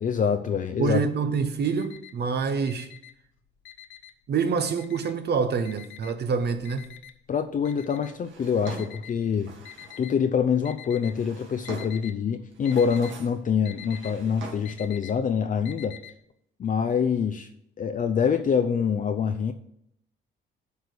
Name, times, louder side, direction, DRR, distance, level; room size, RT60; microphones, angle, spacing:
voice 1, 0.0-1.0 7.3-9.5 10.0-16.0 16.6-17.5 17.8-19.5, left 7 dB, 40° left, 0.6 m, -25 dB
voice 2, 0.8-2.9 4.3-6.9, right 5 dB, 55° right, 0.9 m, -26 dB
Alarm, 1.3-2.3 2.6-4.3 4.6-5.3 5.6-10.1 10.6-11.3 11.5-12.2 12.4-16.1, left 11 dB, 85° left, 0.9 m, -46 dB
Drawer open or close, 8.2-10.1 10.9-12.1 12.5-13.4 13.7-14.9, right 4 dB, 70° right, 2.2 m, -44 dB
8.1 x 4.8 x 6.8 m
cardioid pair, 90°, 20 cm